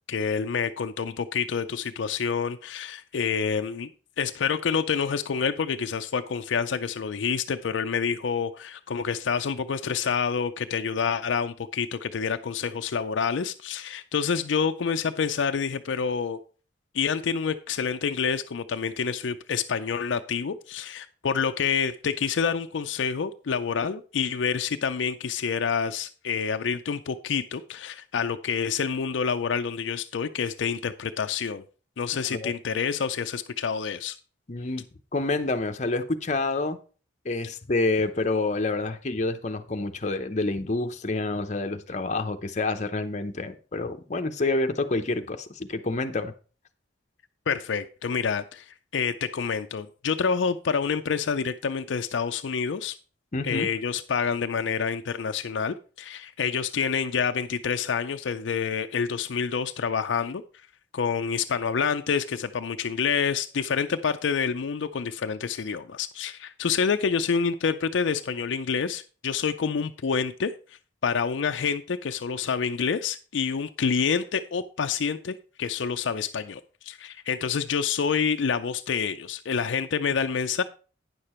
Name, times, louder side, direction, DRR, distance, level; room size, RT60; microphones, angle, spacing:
voice 1, 0.1-3.9 4.2-16.4 16.9-31.6 32.0-34.2 47.5-48.7 48.9-53.0 53.4-60.4 60.9-70.5 71.0-80.6, left 6 dB, 75° left, 0.5 m, -27 dB
voice 2, 34.5-34.8 35.1-36.8 37.2-46.3 53.3-53.7, left 2 dB, 40° left, 0.7 m, -28 dB
9.6 x 6.7 x 4.3 m
head